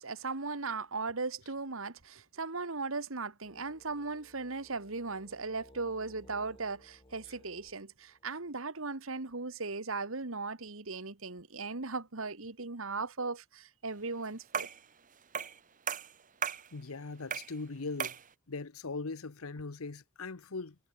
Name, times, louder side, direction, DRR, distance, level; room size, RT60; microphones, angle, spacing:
voice 1, 0.0-14.7, right 3 dB, 70° right, 1.7 m, -38 dB
sound 1, 3.4-8.5, left 1 dB, 25° left, 4.0 m, -60 dB
sound 2, 14.5-14.8 15.3-15.6 15.9-16.7 17.3-17.6 18.0-18.3, right 7 dB, 35° right, 1.3 m, -35 dB
voice 2, 16.7-18.2 18.5-20.8, left 3 dB, 80° left, 1.0 m, -40 dB
head